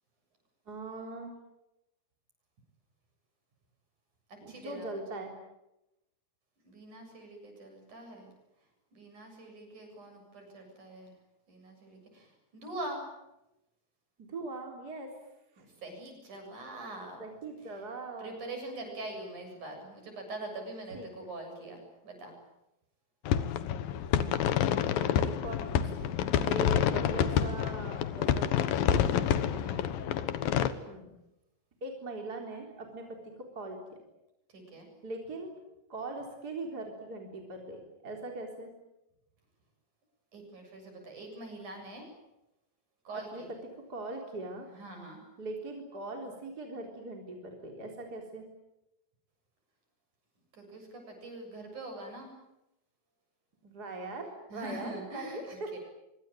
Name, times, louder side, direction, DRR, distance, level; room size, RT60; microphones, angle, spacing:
voice 1, 0.7-1.3 4.4-5.3 14.2-15.1 15.6-15.7 17.2-18.4 20.9-21.1 25.0-28.7 28.9-29.3 30.9-31.1 31.8-34.0 35.0-35.5 35.9-38.7 43.1-44.7 45.4-48.5 53.6-55.8, right 2 dB, 25° right, 2 dB, 4.0 m, -41 dB
voice 2, 4.5-4.9 6.6-8.3 8.9-11.1 11.5-13.1 15.6-17.2 18.2-22.3 26.5-26.9 29.3-29.9 34.5-34.9 40.3-42.1 43.1-43.5 44.8-45.2 50.5-52.3 54.5-55.8, right 2 dB, 55° right, 4 dB, 8.9 m, -44 dB
sound 1, 23.3-30.7, left 9 dB, 75° left, 3.0 m, -28 dB
25.5 x 25.0 x 9.1 m, 0.92 s
omnidirectional pair, 4.3 m